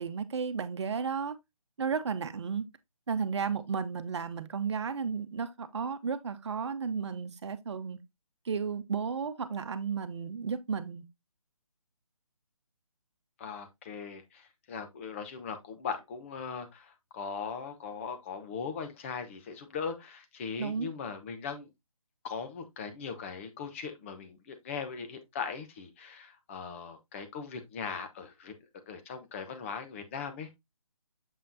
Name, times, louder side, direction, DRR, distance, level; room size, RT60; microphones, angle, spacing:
voice 1, 0.0-1.4 1.8-2.7 3.1-8.0 8.4-11.0 20.6-20.9, right 6 dB, 50° right, 1.0 m, -33 dB
voice 2, 13.4-21.7 22.2-28.5 28.9-30.5, left 6 dB, 20° left, 0.9 m, -39 dB
7.5 x 5.5 x 2.7 m
figure-of-eight pair, 160°, 18 cm